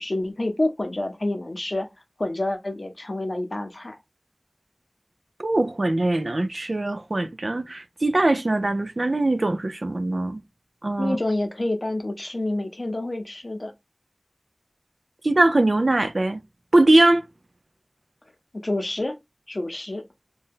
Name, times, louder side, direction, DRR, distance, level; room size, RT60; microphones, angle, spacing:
voice 1, 0.0-1.9 2.2-4.0 11.0-13.7 18.5-19.2 19.5-20.0, left 1 dB, 70° left, 0.6 m, -28 dB
voice 2, 5.4-10.4 10.8-11.2 15.2-16.4 16.7-17.3, right 2 dB, 85° right, 0.3 m, -21 dB
2.7 x 2.2 x 3.4 m
wide cardioid pair, 40°, 0 cm